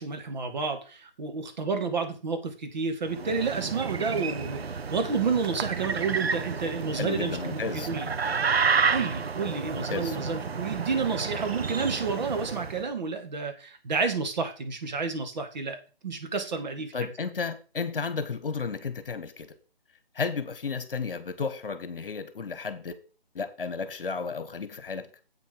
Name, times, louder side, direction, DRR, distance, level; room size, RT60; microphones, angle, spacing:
voice 1, 0.0-8.1 8.9-15.8 16.0-16.9, right 4 dB, 45° right, 2.0 m, -30 dB
sound 1, 3.1-12.8, right 5 dB, 80° right, 0.9 m, -30 dB
voice 2, 6.9-7.9 9.7-10.2 16.9-19.5 20.1-22.9 23.3-25.1, left 5 dB, 65° left, 1.5 m, -33 dB
8.3 x 6.9 x 5.2 m
figure-of-eight pair, 155°, 30 cm